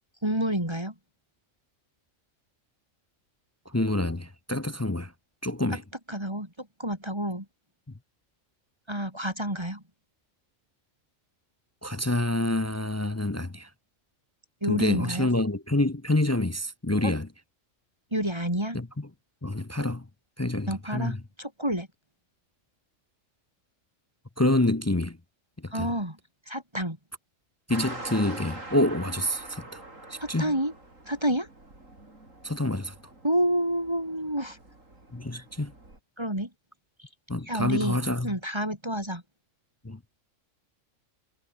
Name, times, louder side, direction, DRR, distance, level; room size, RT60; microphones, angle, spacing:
voice 1, 0.2-0.9 6.1-7.5 8.9-9.8 14.6-15.3 17.0-17.1 18.1-18.8 20.7-21.9 25.7-26.2 26.5-27.0 30.2-30.7 31.1-31.5 33.2-34.6 35.3-35.4 36.2-36.5 37.5-39.2, right 1 dB, 20° right, 4.5 m, -29 dB
voice 2, 3.7-5.1 5.4-5.8 11.8-13.7 14.7-17.3 18.7-19.1 19.4-20.1 20.4-21.2 24.4-25.2 25.6-25.9 27.7-29.8 30.1-30.5 32.4-33.0 35.1-35.7 37.3-38.3 39.8-40.2, left 1 dB, 15° left, 0.5 m, -27 dB
sound 1, 27.7-36.0, right 2 dB, 75° right, 6.4 m, -44 dB
omnidirectional pair, 1.4 m